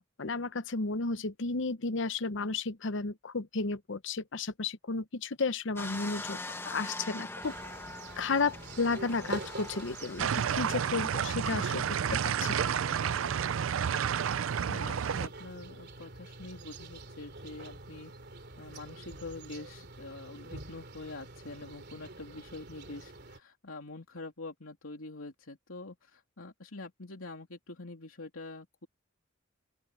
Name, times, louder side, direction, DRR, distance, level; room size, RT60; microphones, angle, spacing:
voice 1, 0.0-6.4 6.6-7.5 8.2-11.8 12.1-12.7, left 3 dB, 65° left, 0.8 m, -33 dB
sound 1, 5.8-10.8 11.4-11.5, left 2 dB, 10° left, 1.3 m, -43 dB
sound 2, 7.4-23.4, right 2 dB, 55° right, 3.3 m, -46 dB
sound 3, 10.2-15.3, right 8 dB, 75° right, 0.4 m, -30 dB
voice 2, 14.6-18.1 18.6-28.9, left 2 dB, 90° left, 3.1 m, -45 dB
open air
head